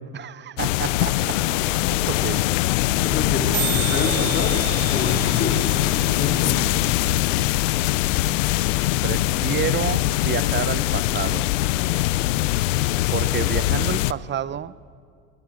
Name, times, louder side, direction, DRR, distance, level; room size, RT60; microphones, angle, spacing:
voice 1, 0.1-1.4 1.8-2.5 9.0-11.6 13.1-14.8, right 9 dB, 30° right, 0.7 m, -29 dB
sound 1, 0.6-14.1, left 16 dB, 90° left, 0.7 m, -22 dB
sound 2, 1.5-1.6 1.7-1.8 2.0-2.2 2.5-2.6 2.8-3.0 3.3-3.4 3.5-7.5, right 21 dB, 75° right, 1.0 m, -33 dB
voice 2, 3.0-4.6 4.9-5.7 5.9-6.7, left 3 dB, 30° left, 4.4 m, -28 dB
26.0 x 22.0 x 7.6 m
supercardioid pair, 105°, 37 cm